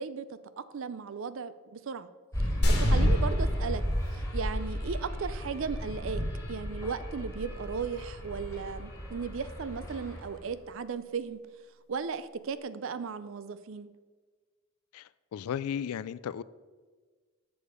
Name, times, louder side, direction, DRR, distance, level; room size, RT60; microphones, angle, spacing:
voice 1, 0.0-2.1 2.8-3.8 4.1-6.2 6.5-11.4 11.9-13.9, right 5 dB, 60° right, 14 dB, 0.4 m, -36 dB
sound 1, 2.3-10.4, equal, 10° left, 1.6 m, -31 dB
sound 2, 2.6-4.6 4.9-5.0, equal, 50° left, 1.5 m, -32 dB
voice 2, 14.9-16.4, left 8 dB, 80° left, 18 dB, 0.3 m, -35 dB
6.9 x 6.6 x 5.1 m, 1.4 s
head